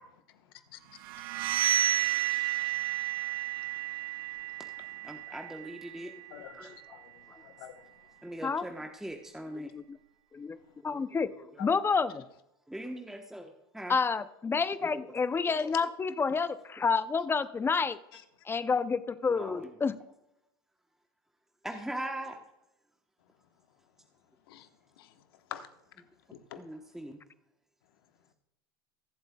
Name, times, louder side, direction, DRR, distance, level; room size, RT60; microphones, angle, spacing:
voice 1, 0.7-1.2 2.7-2.9 3.6-4.3 6.3-7.9 11.6-11.9 18.1-18.2 24.5-24.7 25.0-25.1 25.5-25.7 26.3-26.6, left 11 dB, 75° left, 1.1 m, -48 dB
sound 1, 1.0-6.7, right 12 dB, 70° right, 0.7 m, -32 dB
voice 2, 5.0-6.1 6.5-6.7 8.2-9.7 10.8-11.0 12.7-14.0 14.8-15.0 15.6-15.7 19.3-19.7 21.6-22.4 26.5-27.2, right 1 dB, 5° right, 1.0 m, -40 dB
voice 3, 9.5-10.0 10.3-10.6 10.8-11.3 11.6-12.2 13.9-18.0 18.5-19.9, left 5 dB, 20° left, 0.5 m, -29 dB
22.5 x 7.8 x 2.2 m
hypercardioid pair, 95°, 12 cm